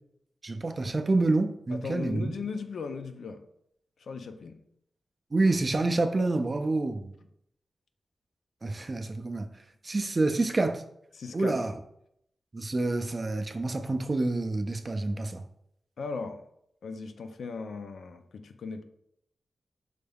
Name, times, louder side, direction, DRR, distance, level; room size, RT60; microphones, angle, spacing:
voice 1, 0.4-2.3 5.3-7.1 8.6-9.5 9.8-10.8 11.3-11.7 12.5-15.4, right 2 dB, 35° right, 0.4 m, -28 dB
voice 2, 1.7-3.4 4.0-4.6 11.2-11.6 16.0-16.4 16.8-18.8, left 4 dB, 80° left, 0.4 m, -37 dB
6.3 x 3.4 x 2.3 m
wide cardioid pair, 105°, 0 cm